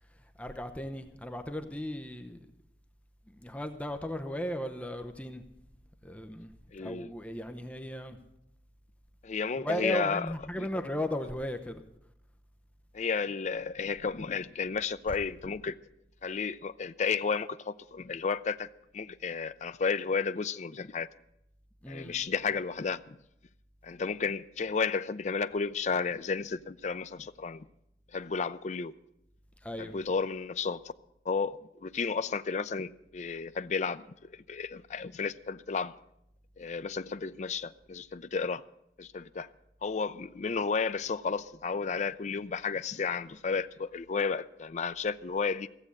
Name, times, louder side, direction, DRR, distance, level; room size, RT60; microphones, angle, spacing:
voice 1, 0.4-2.4 3.3-5.4 6.0-6.5 6.8-8.2 9.6-11.8 15.1-15.2 21.8-22.2 29.6-30.0, left 1 dB, 10° left, 0.7 m, -36 dB
voice 2, 6.7-7.1 9.2-10.7 12.9-15.8 16.2-18.7 18.9-21.1 21.9-23.2 23.8-27.7 28.1-28.9 29.8-30.8 31.3-34.1 34.3-36.0 36.6-38.6 39.0-39.5 39.8-45.7, left 5 dB, 40° left, 0.4 m, -32 dB
15.0 x 7.7 x 8.4 m
head